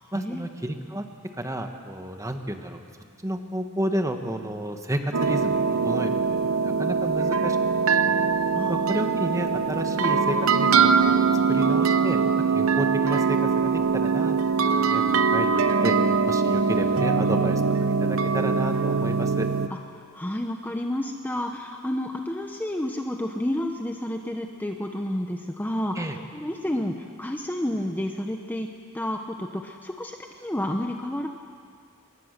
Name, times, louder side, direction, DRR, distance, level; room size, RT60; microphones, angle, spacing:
voice 1, 0.1-1.0 1.4-2.8 3.2-7.6 8.0-8.1 8.7-12.2 12.5-14.5 14.8-15.9 16.3-19.5 25.9-26.2, right 1 dB, 15° right, 5 dB, 1.4 m, -31 dB
sound 1, 5.1-19.7, right 5 dB, 85° right, 0.8 m, -22 dB
voice 2, 8.5-8.9 19.9-31.3, left 1 dB, 10° left, 4 dB, 0.8 m, -30 dB
23.0 x 20.0 x 6.7 m, 2.2 s
head